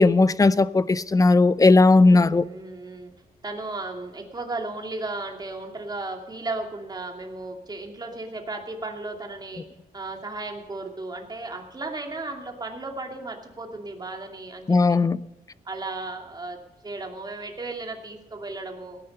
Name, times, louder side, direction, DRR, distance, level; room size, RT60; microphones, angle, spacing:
voice 1, 0.0-2.4 14.7-15.2, left 3 dB, 20° left, 0.6 m, -17 dB
voice 2, 2.0-3.1 3.4-9.6 9.9-15.0 15.6-16.6 16.8-19.0, right 2 dB, 25° right, 2.6 m, -35 dB
18.0 x 10.5 x 5.5 m
wide cardioid pair, 125°, 16 cm